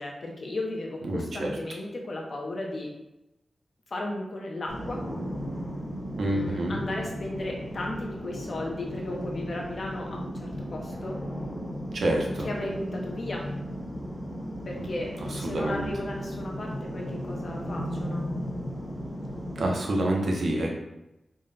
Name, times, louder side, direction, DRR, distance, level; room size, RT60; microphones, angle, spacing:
voice 1, 0.0-2.9 3.9-5.0 6.2-11.2 12.4-13.5 14.6-18.3, left 1 dB, 45° left, -1 dB, 0.7 m, -35 dB
voice 2, 1.0-1.5 6.2-6.7 11.9-12.5 14.8-14.9 15.3-15.9 19.6-20.7, right 1 dB, 60° right, 0 dB, 0.6 m, -27 dB
sound 1, 4.7-19.7, equal, 15° left, 0.9 m, -36 dB
3.8 x 2.1 x 3.8 m, 0.92 s
wide cardioid pair, 175°, 0 cm